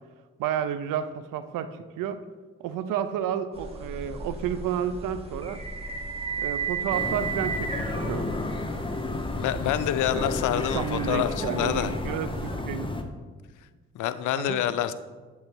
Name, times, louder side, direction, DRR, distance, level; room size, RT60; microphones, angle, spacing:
voice 1, 0.4-2.2 2.6-5.6 6.4-8.3 10.1-12.9 14.3-14.6, right 9 dB, 70° right, 12 dB, 0.5 m, -31 dB
sound 1, 3.5-12.6, right 4 dB, 15° right, 1.7 m, -35 dB
sound 2, 6.9-13.0, left 2 dB, 15° left, 0.7 m, -32 dB
voice 2, 9.4-11.9 13.9-14.9, left 11 dB, 60° left, 13 dB, 0.5 m, -27 dB
7.8 x 3.4 x 4.4 m, 1.4 s
hypercardioid pair, 40°, 34 cm